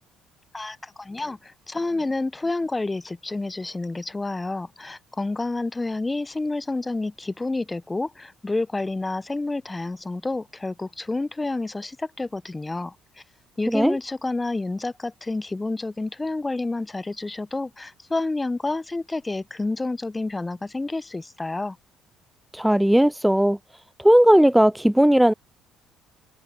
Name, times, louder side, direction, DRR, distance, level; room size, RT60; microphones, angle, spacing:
voice 1, 0.5-13.0 13.6-21.8, left 2 dB, 20° left, 0.9 m, -29 dB
voice 2, 22.5-23.6 24.0-25.3, equal, 5° right, 0.3 m, -17 dB
hypercardioid pair, 60°, 0 cm